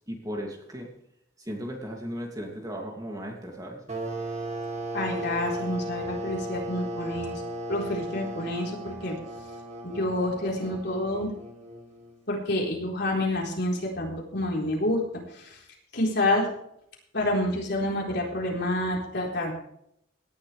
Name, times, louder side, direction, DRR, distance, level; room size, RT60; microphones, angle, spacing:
voice 1, 0.1-0.9 1.4-3.8, equal, 20° right, 0 dB, 2.6 m, -36 dB
sound 1, 3.9-12.3, right 1 dB, 35° right, 2.4 m, -36 dB
voice 2, 4.9-7.4 7.7-9.1 9.8-11.3 12.3-15.0 15.3-15.6 15.9-16.5 17.1-19.5, left 1 dB, 55° left, -1 dB, 4.1 m, -28 dB
18.0 x 11.0 x 3.4 m, 0.73 s
head